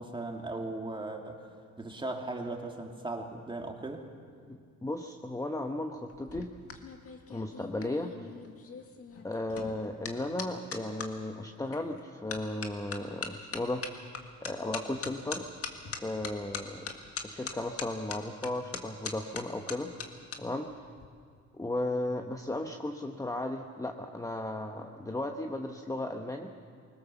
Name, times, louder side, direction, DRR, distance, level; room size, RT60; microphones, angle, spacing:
voice 1, 0.0-1.5 1.8-4.1, right 2 dB, 15° right, 2 dB, 2.6 m, -38 dB
voice 2, 4.5-6.5 7.3-8.3 9.2-13.8 14.4-15.4 15.9-16.9 17.2-19.9 20.4-20.7 21.5-26.5, left 1 dB, 10° left, 4 dB, 1.0 m, -35 dB
sound 1, 6.1-11.1 11.7-12.0 12.3-20.4 20.7-21.1, left 5 dB, 50° left, 1.9 m, -41 dB
21.5 x 19.0 x 7.0 m, 2.1 s
cardioid pair, 90°, 30 cm